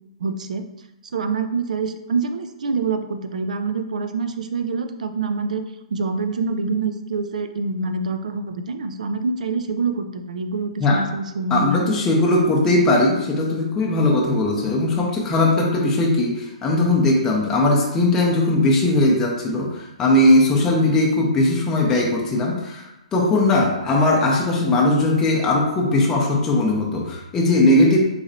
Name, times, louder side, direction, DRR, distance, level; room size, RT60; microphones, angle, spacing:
voice 1, 0.2-0.7 1.1-5.6 5.9-12.1, right 4 dB, 80° right, 8 dB, 0.4 m, -26 dB
voice 2, 11.5-28.0, left 2 dB, 15° left, -2 dB, 0.5 m, -19 dB
3.9 x 3.1 x 2.6 m, 0.91 s
hypercardioid pair, 155°, 4 cm